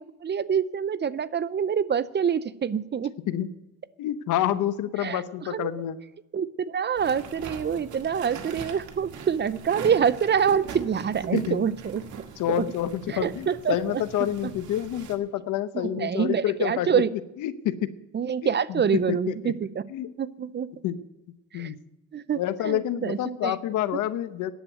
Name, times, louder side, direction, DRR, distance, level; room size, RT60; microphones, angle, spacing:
voice 1, 0.0-3.1 5.0-5.7 6.3-12.0 12.5-12.7 13.1-14.5 15.7-17.1 18.1-19.8 20.2-20.7 21.5-21.7 22.1-23.5, right 7 dB, 35° right, 17 dB, 0.6 m, -26 dB
voice 2, 4.0-6.0 11.3-11.6 12.4-17.0 17.4-17.9 18.4-18.8 19.1-19.5 19.9-20.1 20.8-21.0 21.5-21.8 22.4-24.5, left 11 dB, 85° left, 14 dB, 0.9 m, -28 dB
sound 1, 7.0-15.2, right 6 dB, 75° right, 1.8 m, -41 dB
10.5 x 8.0 x 9.1 m, 0.94 s
cardioid pair, 90°, 30 cm